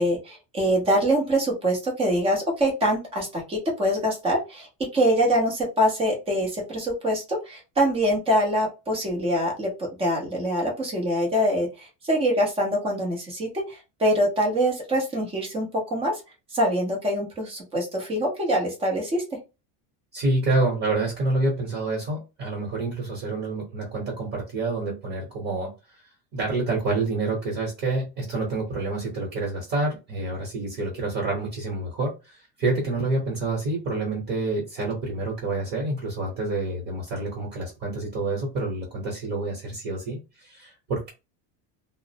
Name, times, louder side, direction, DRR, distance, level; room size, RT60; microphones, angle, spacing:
voice 1, 0.0-16.2 16.5-19.2, equal, 10° right, -1 dB, 0.6 m, -24 dB
voice 2, 20.1-26.0 26.3-41.1, right 2 dB, 35° right, -2 dB, 1.0 m, -28 dB
2.4 x 2.0 x 2.8 m, 0.26 s
cardioid pair, 170°, 49 cm